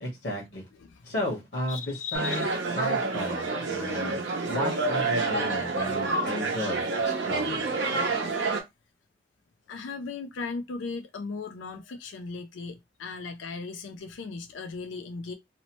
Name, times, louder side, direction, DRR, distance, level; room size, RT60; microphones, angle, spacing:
voice 1, 0.0-0.6 1.0-2.4 2.8-7.7, left 1 dB, 65° left, 1.1 m, -34 dB
voice 2, 1.7-2.6 3.7-4.5 9.7-15.3, left 4 dB, 85° left, 0.4 m, -38 dB
sound 1, 2.1-8.6, right 3 dB, 75° right, 0.7 m, -28 dB
2.8 x 2.0 x 2.9 m
head